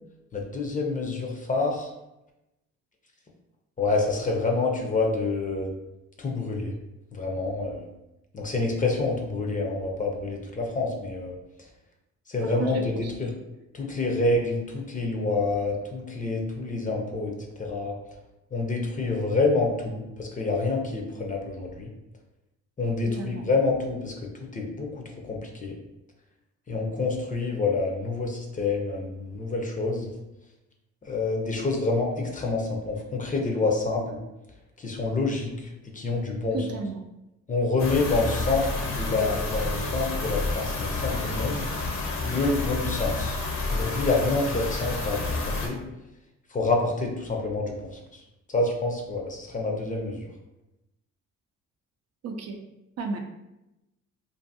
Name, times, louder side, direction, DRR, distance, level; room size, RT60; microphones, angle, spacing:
voice 1, 0.3-1.9 3.8-5.7 6.2-6.7 7.1-7.8 8.3-11.4 12.3-13.3 13.7-17.3 17.6-18.0 18.5-21.9 22.8-24.1 24.4-25.7 26.7-30.1 31.0-34.2 34.8-36.6 37.5-42.0 42.2-43.4 43.7-45.8 46.5-47.9 48.5-50.2, left 3 dB, 25° left, 0 dB, 0.5 m, -27 dB
voice 2, 12.4-13.1 23.0-23.4 36.5-37.0 52.2-52.6 53.0-53.2, right 4 dB, 55° right, 4 dB, 0.5 m, -33 dB
sound 1, 37.8-45.7, left 3 dB, 65° left, 0.7 m, -29 dB
2.6 x 2.5 x 2.6 m, 0.94 s
cardioid pair, 90°, 30 cm